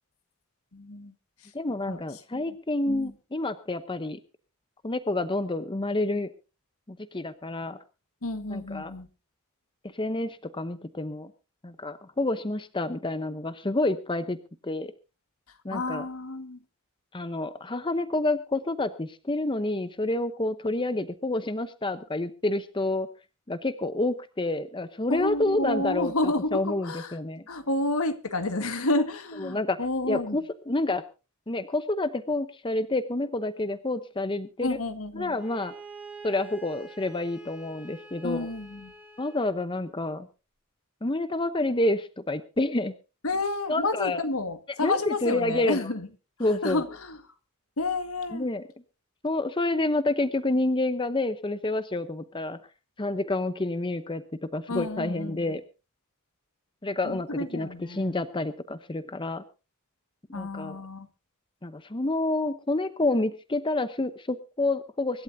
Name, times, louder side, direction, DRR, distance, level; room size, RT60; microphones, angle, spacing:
voice 1, 0.7-1.1 1.4-1.5 1.9-2.6 2.9-3.1 8.2-9.1 15.5-16.6 25.1-27.2 27.5-30.4 34.6-35.4 38.2-38.9 43.2-46.1 46.4-47.2 47.8-48.5 54.7-55.6 57.0-58.3 60.3-61.1, left 2 dB, 80° left, 9 dB, 1.7 m, -30 dB
voice 2, 1.5-4.2 4.8-6.3 6.9-7.8 8.5-8.9 9.9-11.3 11.6-14.4 14.6-14.9 15.6-16.0 17.1-23.1 23.5-26.1 26.5-27.4 29.4-29.8 30.1-31.0 31.5-34.8 35.2-35.7 36.2-38.5 39.2-40.3 41.0-42.9 43.7-44.2 44.8-45.8 46.4-46.8 48.3-48.6 49.2-52.6 53.0-55.6 56.8-59.4 60.3-60.8 61.6-65.2, left 2 dB, 20° left, 12 dB, 0.8 m, -28 dB
Bowed string instrument, 35.4-39.6, right 3 dB, 5° right, 2.7 m, -46 dB
25.0 x 12.0 x 2.7 m, 0.31 s
head